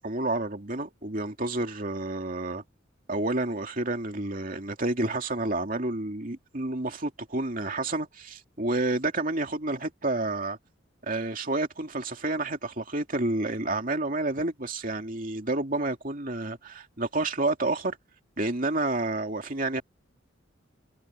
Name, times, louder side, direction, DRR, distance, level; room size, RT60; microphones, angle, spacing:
voice 1, 0.0-2.6 3.1-10.6 11.0-18.0 18.4-19.8, right 2 dB, 45° right, 2.7 m, -29 dB
head